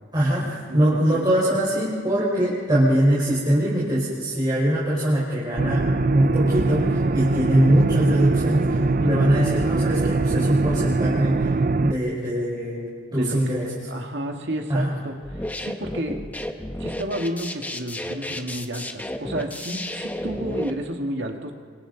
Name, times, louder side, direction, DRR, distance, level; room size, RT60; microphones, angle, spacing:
voice 1, 0.1-5.8 6.1-11.5 11.8-13.6 14.7-14.9, right 1 dB, 25° right, -7 dB, 4.9 m, -22 dB
voice 2, 0.7-1.3 8.9-9.2 13.2-16.2 16.8-21.5, right 1 dB, 65° right, 3 dB, 2.1 m, -31 dB
sound 1, 5.6-11.9, right 3 dB, 45° right, 0.6 m, -22 dB
sound 2, 15.2-20.7, left 1 dB, 10° left, 1.2 m, -32 dB
29.5 x 25.5 x 4.1 m, 2.2 s
head